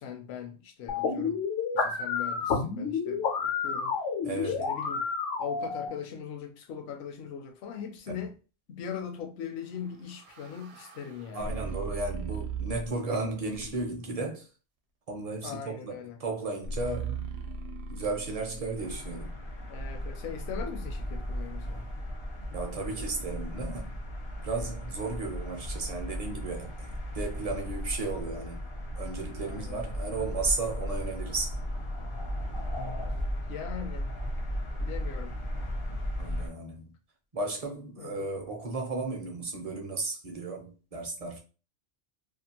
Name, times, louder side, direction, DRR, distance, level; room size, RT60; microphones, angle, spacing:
voice 1, 0.0-1.4 1.7-4.0 4.4-5.1 5.4-8.3 8.7-11.5 15.4-16.2 19.7-21.9 29.4-29.8 33.5-34.1 34.8-35.4 38.0-38.3, left 7 dB, 70° left, 0.8 m, -40 dB
sound 1, 0.9-5.9, left 5 dB, 90° left, 1.1 m, -30 dB
voice 2, 4.2-4.7 8.1-8.2 11.3-14.5 15.1-17.2 17.9-19.3 22.5-24.0 24.4-26.9 27.1-28.6 29.0-31.6 36.2-36.9 37.3-41.4, right 3 dB, 40° right, 0.6 m, -34 dB
sound 2, 9.7-13.1 13.5-14.1 16.6-20.7, right 4 dB, 70° right, 0.8 m, -39 dB
sound 3, 18.8-36.5, equal, 40° left, 0.4 m, -36 dB
2.6 x 2.3 x 2.8 m
omnidirectional pair, 1.2 m